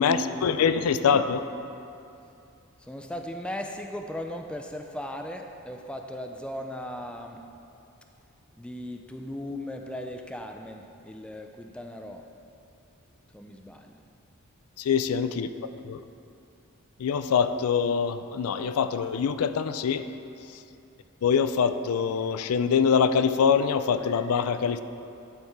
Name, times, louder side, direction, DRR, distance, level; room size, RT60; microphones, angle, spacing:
voice 1, 0.0-1.4 14.8-15.5 15.8-16.0 17.0-20.0 21.2-24.8, left 6 dB, 85° left, 11 dB, 0.4 m, -24 dB
voice 2, 2.8-7.4 8.6-12.2 13.3-14.0 18.6-18.7, left 1 dB, 5° left, 4 dB, 0.3 m, -37 dB
11.0 x 4.5 x 4.7 m, 2.7 s
head